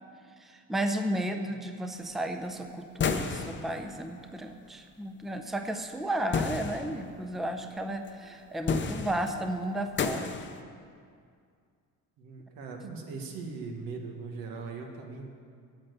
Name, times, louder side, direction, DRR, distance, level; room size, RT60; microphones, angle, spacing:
voice 1, 0.4-10.4, right 1 dB, ahead, 6 dB, 0.6 m, -33 dB
sound 1, 3.0-3.7 6.3-7.0 8.1-8.2 8.7-9.4 10.0-10.6, left 5 dB, 35° left, 0.7 m, -31 dB
voice 2, 12.2-15.3, right 4 dB, 90° right, 2 dB, 1.6 m, -40 dB
8.8 x 7.3 x 8.1 m, 2.2 s
cardioid pair, 120°, 34 cm